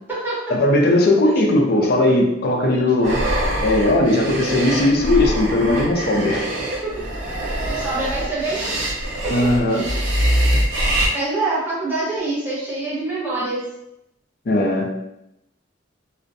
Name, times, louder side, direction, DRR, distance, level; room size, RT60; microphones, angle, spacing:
voice 1, 0.5-3.2 3.6-6.4 9.3-9.9 14.5-14.9, left 1 dB, 55° left, 1 dB, 0.4 m, -18 dB
sound 1, 3.0-11.1, right 1 dB, 90° right, 0.5 m, -23 dB
voice 2, 7.7-8.7 9.2-9.3 11.1-13.6, right 2 dB, 10° right, -8 dB, 0.8 m, -25 dB
2.4 x 2.0 x 2.5 m, 0.84 s
head